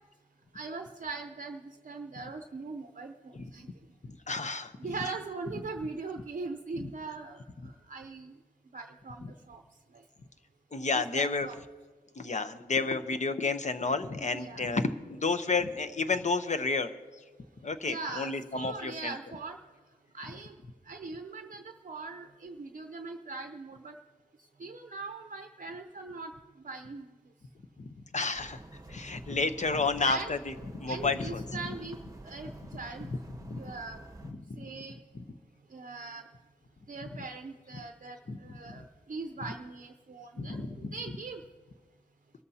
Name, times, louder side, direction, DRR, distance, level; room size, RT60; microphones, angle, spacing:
voice 1, 0.5-3.7 4.8-8.3 8.7-9.6 9.9-10.0 10.9-11.6 14.2-14.7 17.9-19.6 20.1-20.6 20.9-24.0 24.6-26.3 26.6-27.1 30.0-30.3 30.9-32.0 32.2-33.1 33.5-34.0 34.6-35.0 35.7-36.3 36.9-41.4, right 3 dB, 50° right, 6 dB, 0.7 m, -41 dB
voice 2, 4.0-4.7 10.7-11.5 12.2-16.9 17.6-19.1 27.8-28.6 28.9-31.7 33.4-33.6 34.2-34.6 37.1-37.2 38.3-38.4 38.7-38.8 40.4-40.9, left 4 dB, 40° left, 10 dB, 0.8 m, -31 dB
sound 1, 28.3-34.3, right 2 dB, 20° right, 1.0 m, -49 dB
23.5 x 13.5 x 2.8 m, 1.4 s
wide cardioid pair, 100°, 18 cm